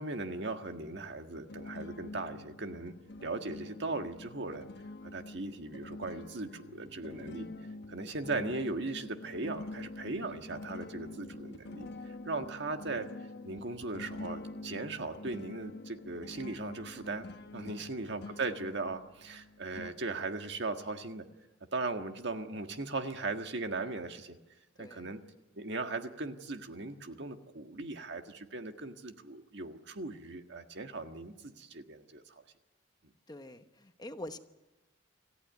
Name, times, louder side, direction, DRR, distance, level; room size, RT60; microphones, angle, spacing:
voice 1, 0.0-2.9 3.2-4.7 5.0-7.5 7.9-13.1 13.4-21.3 21.7-24.4 24.8-25.2 25.6-32.4, right 3 dB, 60° right, 6 dB, 1.7 m, -38 dB
sound 1, 1.5-19.9, left 2 dB, 60° left, 1.1 m, -46 dB
voice 2, 17.6-17.9 24.8-25.1 33.3-34.4, left 1 dB, 20° left, 8 dB, 1.0 m, -46 dB
27.0 x 15.0 x 9.5 m, 1.1 s
head